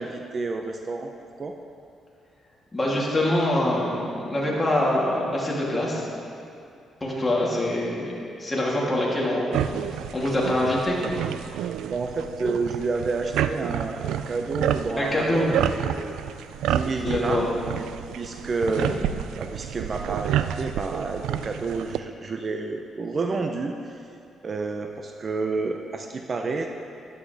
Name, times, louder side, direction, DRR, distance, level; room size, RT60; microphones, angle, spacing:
voice 1, 0.0-1.6 11.8-16.2 16.7-17.4 17.8-17.9 18.1-19.0 19.4-24.1 24.4-26.7, right 3 dB, 40° right, 4 dB, 0.7 m, -30 dB
voice 2, 2.7-6.1 7.0-8.1 8.4-9.6 10.1-11.1 15.0-15.5 17.0-17.5 18.7-19.0, left 1 dB, 15° left, -5 dB, 3.0 m, -24 dB
sound 1, 9.5-22.0, right 10 dB, 85° right, 0.3 m, -29 dB
13.5 x 11.0 x 3.5 m, 2.5 s
cardioid pair, 90°, 0 cm